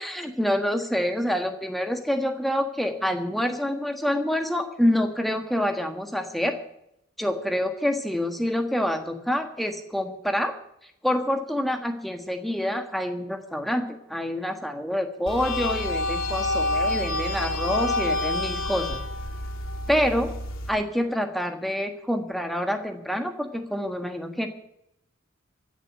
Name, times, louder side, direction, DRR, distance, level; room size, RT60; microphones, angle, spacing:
voice 1, 0.0-6.5 7.2-10.5 11.0-19.0 19.9-20.3 20.7-24.5, equal, ahead, 5 dB, 1.5 m, -27 dB
sound 1, 15.3-20.7, left 2 dB, 80° left, 2.7 m, -28 dB
15.0 x 7.3 x 10.0 m, 0.77 s
head